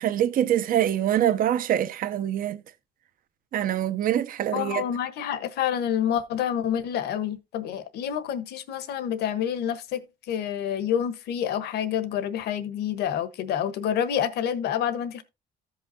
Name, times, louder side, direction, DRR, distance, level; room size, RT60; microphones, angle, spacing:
voice 1, 0.0-2.6 3.5-4.8, right 11 dB, 55° right, 0.7 m, -24 dB
voice 2, 4.5-15.2, left 9 dB, 75° left, 1.2 m, -28 dB
14.0 x 5.5 x 2.7 m
cardioid pair, 110°, 17 cm